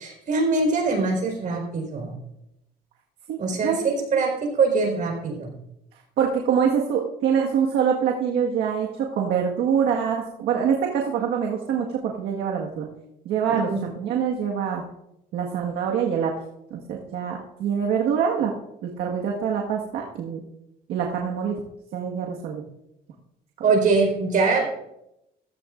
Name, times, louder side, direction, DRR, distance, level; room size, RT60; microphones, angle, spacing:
voice 1, 0.0-2.2 3.4-5.5 13.5-13.9 23.6-24.7, right 4 dB, 50° right, 2 dB, 4.6 m, -23 dB
voice 2, 6.2-12.9 13.3-14.8 15.3-16.3 16.7-18.5 18.8-20.4 20.9-21.6 21.9-22.6, right 7 dB, 80° right, -1 dB, 1.7 m, -25 dB
15.0 x 15.0 x 2.6 m, 0.84 s
cardioid pair, 110°, 17 cm